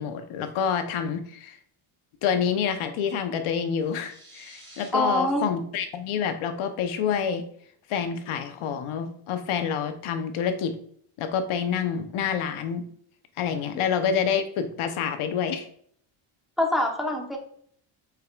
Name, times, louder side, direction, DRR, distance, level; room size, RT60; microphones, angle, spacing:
voice 1, 0.0-1.6 2.2-7.4 7.9-10.7 11.2-12.8 13.4-15.7, left 7 dB, 75° left, 7 dB, 0.9 m, -27 dB
sound 1, 3.7-4.9, right 1 dB, 25° right, 2.4 m, -50 dB
voice 2, 4.9-5.4 16.6-17.4, left 1 dB, ahead, 1 dB, 0.9 m, -24 dB
8.2 x 4.9 x 2.3 m, 0.64 s
cardioid pair, 135°, 49 cm